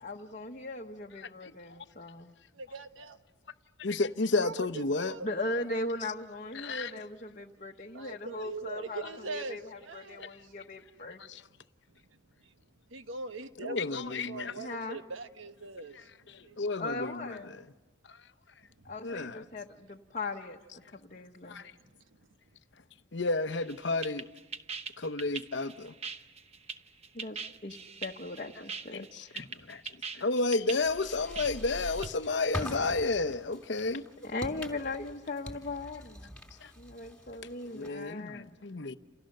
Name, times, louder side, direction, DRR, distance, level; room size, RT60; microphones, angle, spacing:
voice 1, 0.0-2.3 5.1-11.2 14.6-15.0 16.8-17.6 18.8-20.6 20.9-21.7 27.1-27.7 28.0-29.5 34.2-36.3 36.8-38.5, left 2 dB, 40° left, 1.0 m, -39 dB
voice 2, 2.5-3.2 4.4-5.3 7.9-10.5 12.1-12.5 12.9-16.1 16.4-16.6 18.8-18.9 20.9-21.3 21.8-22.2, right 3 dB, 75° right, 1.2 m, -42 dB
voice 3, 3.8-5.2 6.5-6.9 9.0-9.2 11.2-11.4 13.6-14.6 16.3-17.7 19.0-19.5 21.6-21.7 23.1-24.3 25.0-25.9 28.6-34.1 36.6-36.7 37.7-38.9, left 3 dB, 60° left, 0.8 m, -32 dB
sound 1, 23.5-32.1, right 4 dB, 30° right, 0.9 m, -41 dB
sound 2, 30.8-38.1, left 1 dB, 5° left, 3.2 m, -44 dB
29.5 x 29.0 x 6.6 m
head